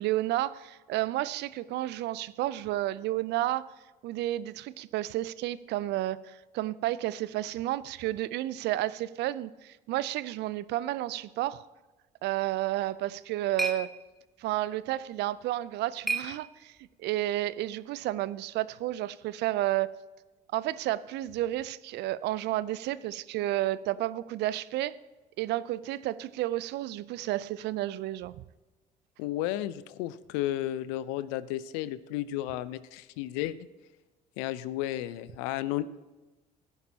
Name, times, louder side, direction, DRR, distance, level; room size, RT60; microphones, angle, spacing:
voice 1, 0.0-3.6 4.0-11.6 12.2-13.9 14.4-16.7 17.0-20.0 20.5-25.0 25.4-28.3, right 15 dB, 60° right, 18 dB, 0.5 m, -31 dB
sound 1, 12.8-17.1, right 2 dB, ahead, 1.2 m, -38 dB
voice 2, 29.2-33.6 34.4-36.0, left 14 dB, 70° left, 17 dB, 0.5 m, -33 dB
15.5 x 10.5 x 2.8 m, 1.2 s
hypercardioid pair, 60°, 20 cm